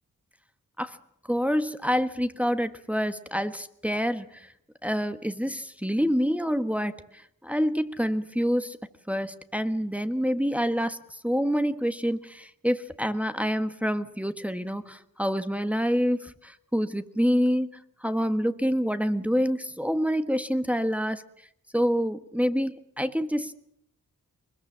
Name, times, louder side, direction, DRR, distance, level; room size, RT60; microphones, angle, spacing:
voice 1, 1.3-4.5 4.8-8.8 9.1-17.7 18.0-21.2 21.7-23.5, equal, 5° right, 9 dB, 1.4 m, -27 dB
23.0 x 21.0 x 7.4 m, 0.74 s
cardioid pair, 50°, 34 cm